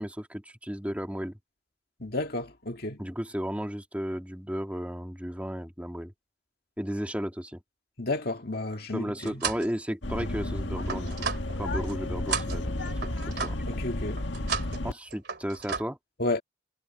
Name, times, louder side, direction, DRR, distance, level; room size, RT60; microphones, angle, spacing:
voice 1, 0.0-1.4 3.0-6.1 6.8-7.6 8.9-11.3 11.6-12.9 13.4-13.6 14.8-16.0, equal, 5° right, 2.6 m, -34 dB
voice 2, 2.0-3.0 8.0-9.4 13.7-14.2 16.2-16.4, left 2 dB, 55° left, 2.0 m, -31 dB
sound 1, 8.7-9.7 10.2-11.9 12.3-13.7 14.2-14.8 15.1-15.8, right 6 dB, 60° right, 3.0 m, -34 dB
sound 2, 10.0-14.9, left 1 dB, 75° left, 1.7 m, -32 dB
head